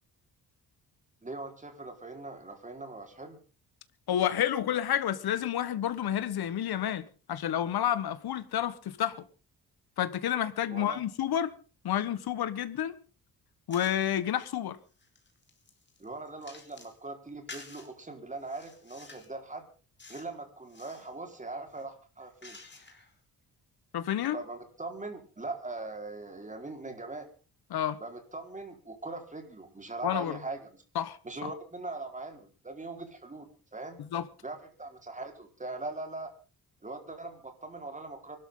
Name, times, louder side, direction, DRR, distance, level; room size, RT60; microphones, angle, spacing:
voice 1, 1.2-3.4 10.7-11.0 16.0-19.6 20.1-22.6 24.3-27.3 28.0-30.8 31.2-34.0 34.4-36.3 36.8-38.4, right 2 dB, 20° right, 4.5 m, -41 dB
voice 2, 4.1-9.2 10.0-11.5 11.8-13.0 13.7-14.8 23.9-24.4 27.7-28.0 30.0-30.4 30.9-31.5 34.0-34.3, left 10 dB, 80° left, 1.4 m, -30 dB
sound 1, 13.7-14.2 14.8-17.0 17.5-17.9 18.4-19.4 20.0-20.3 20.6-21.1 21.7-23.1, left 3 dB, 30° left, 4.8 m, -51 dB
24.5 x 13.0 x 3.8 m
cardioid pair, 120°, 37 cm